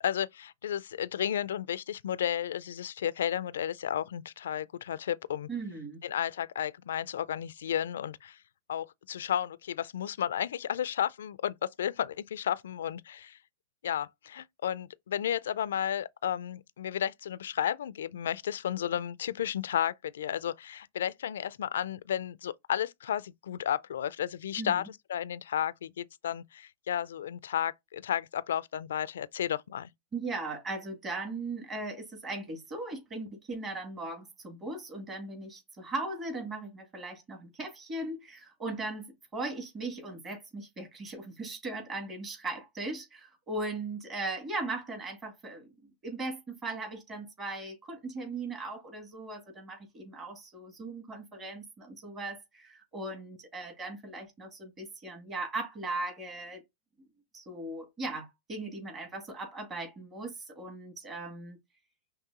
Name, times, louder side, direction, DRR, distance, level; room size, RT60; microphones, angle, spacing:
voice 1, 0.0-5.5 6.0-8.4 8.7-13.4 13.8-29.9, left 10 dB, 75° left, 0.3 m, -33 dB
voice 2, 5.5-6.0 24.6-24.8 30.1-45.7 46.0-56.6 57.3-61.6, right 2 dB, 30° right, 2.2 m, -38 dB
5.9 x 2.6 x 2.9 m
hypercardioid pair, 115°, 0 cm